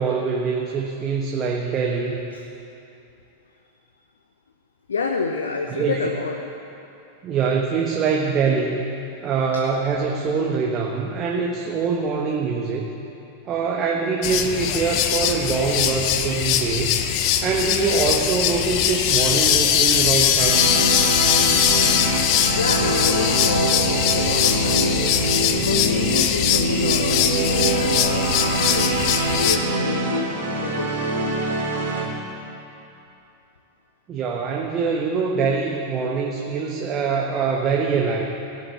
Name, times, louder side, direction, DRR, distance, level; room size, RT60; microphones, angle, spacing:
voice 1, 0.0-2.2 5.7-6.1 7.2-8.8 9.2-12.9 13.4-17.0 17.4-20.7 34.1-38.2, right 5 dB, 30° right, 0 dB, 1.3 m, -24 dB
voice 2, 4.9-6.4 22.6-25.0 25.5-31.0, left 4 dB, 70° left, 3 dB, 0.9 m, -29 dB
sound 1, 14.2-29.6, left 9 dB, 45° left, 0.9 m, -21 dB
sound 2, 20.4-32.1, right 2 dB, 65° right, 2.9 m, -24 dB
17.0 x 7.3 x 9.6 m, 2.9 s
figure-of-eight pair, 90°, 0 cm